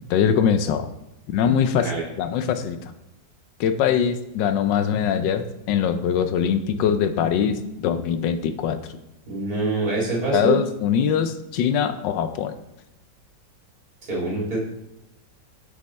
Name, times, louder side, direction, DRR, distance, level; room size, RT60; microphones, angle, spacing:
voice 1, 0.1-0.9 1.3-1.9 2.2-2.8 3.6-8.8 10.3-12.5, left 8 dB, 80° left, 9 dB, 1.3 m, -22 dB
voice 2, 9.3-10.5 14.1-14.6, right 3 dB, 55° right, -4 dB, 2.8 m, -25 dB
6.4 x 5.6 x 4.2 m, 0.92 s
omnidirectional pair, 1.9 m